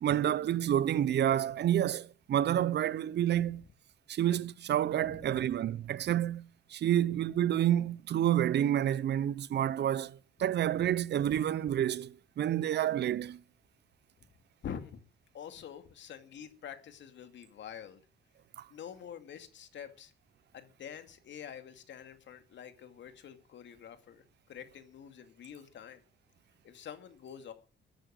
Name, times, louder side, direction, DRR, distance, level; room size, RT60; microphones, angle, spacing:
voice 1, 0.0-3.6 4.1-6.4 6.7-13.4 18.6-18.7, right 11 dB, 60° right, 0.7 m, -29 dB
voice 2, 3.3-3.6 5.0-5.6 14.6-14.9 15.3-18.0 18.7-20.1 20.5-26.0 26.6-27.5, left 8 dB, 65° left, 2.5 m, -47 dB
15.0 x 10.5 x 6.5 m
cardioid pair, 90°, 20 cm